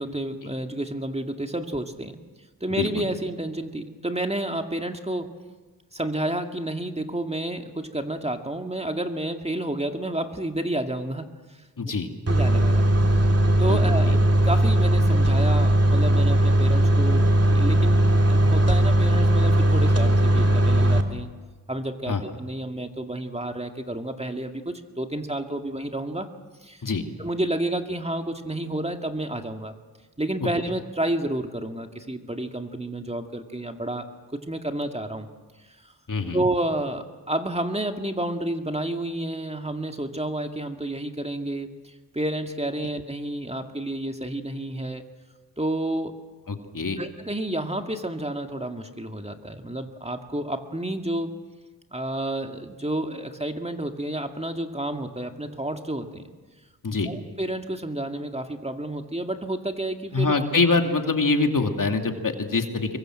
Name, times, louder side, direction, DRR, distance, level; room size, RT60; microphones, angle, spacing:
voice 1, 0.0-2.2 2.6-5.3 5.9-11.3 12.3-12.9 13.6-21.3 21.7-26.3 26.6-26.8 27.2-29.7 30.2-35.3 36.3-45.0 45.6-46.1 47.0-51.3 51.9-56.3 56.9-60.4, right 1 dB, 15° right, 5 dB, 2.1 m, -30 dB
voice 2, 2.7-3.0 11.8-12.1 13.7-14.2 22.1-22.2 26.8-27.0 36.1-36.4 46.5-47.0 56.8-57.1 60.1-63.0, left 3 dB, 55° left, 5 dB, 2.6 m, -24 dB
sound 1, 12.3-21.0, right 1 dB, 40° right, 2.9 m, -19 dB
26.0 x 23.0 x 7.7 m, 1.3 s
cardioid pair, 60°, 39 cm